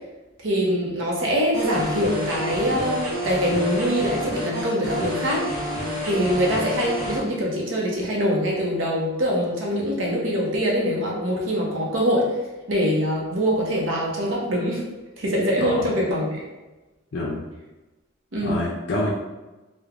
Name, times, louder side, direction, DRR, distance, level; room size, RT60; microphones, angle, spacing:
voice 1, 0.4-5.5 6.0-12.3 12.7-14.8 15.2-16.4 18.3-18.6, equal, 70° right, -3 dB, 0.7 m, -23 dB
sound 1, 1.5-7.2, equal, 35° right, 1.2 m, -29 dB
voice 2, 17.1-17.4 18.4-19.1, left 2 dB, 60° left, -5 dB, 0.4 m, -27 dB
3.1 x 2.1 x 2.4 m, 1.1 s
head